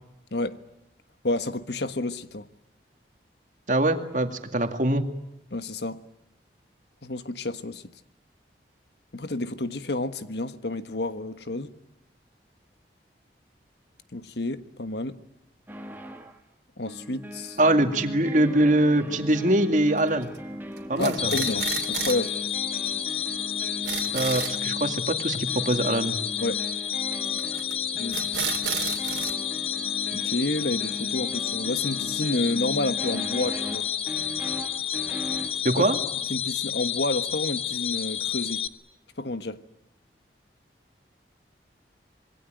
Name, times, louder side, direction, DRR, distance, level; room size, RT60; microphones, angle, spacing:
voice 1, 1.2-2.5 5.5-6.0 7.0-7.8 9.1-11.7 14.1-15.2 16.8-17.6 21.0-22.4 26.4-26.6 27.9-28.2 30.1-33.9 35.8-35.9 36.3-38.6 39.2-39.6, left 2 dB, 75° left, 1.4 m, -30 dB
voice 2, 3.7-5.0 17.6-20.3 20.9-21.3 24.1-26.1 35.6-36.0, right 1 dB, 45° right, 2.2 m, -23 dB
sound 1, 15.7-16.4 16.9-35.6, equal, 10° right, 1.8 m, -39 dB
sound 2, 20.0-20.4 20.8-22.3 22.6-22.7 22.9-23.0 23.3-23.4 23.6-24.6 27.4-27.7 28.1-29.3, right 9 dB, 90° right, 3.0 m, -32 dB
sound 3, 21.2-38.7, left 9 dB, 35° left, 1.1 m, -30 dB
26.5 x 22.5 x 9.1 m
head